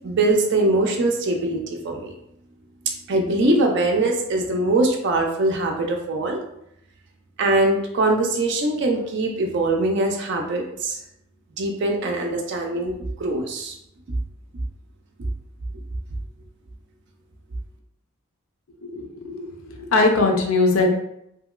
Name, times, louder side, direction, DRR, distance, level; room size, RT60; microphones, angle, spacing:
voice 1, 0.0-2.1 3.1-6.4 7.4-11.0 11.6-13.8, right 2 dB, 55° right, 2 dB, 0.4 m, -22 dB
voice 2, 18.8-19.6 19.9-20.9, left 3 dB, 70° left, 2 dB, 0.6 m, -20 dB
2.8 x 2.7 x 2.3 m, 0.77 s
head